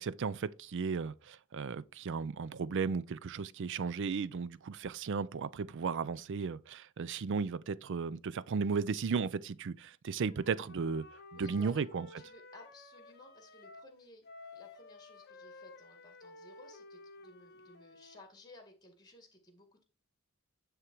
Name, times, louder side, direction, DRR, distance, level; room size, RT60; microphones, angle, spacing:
voice 1, 0.0-11.0 11.4-12.1, right 5 dB, 60° right, 0.4 m, -35 dB
Wind instrument woodwind instrument, 10.2-13.9 14.2-18.3, left 2 dB, 50° left, 0.9 m, -54 dB
voice 2, 11.3-11.8 12.2-14.2 14.5-19.8, left 2 dB, 20° left, 1.9 m, -57 dB
9.8 x 3.7 x 4.5 m
head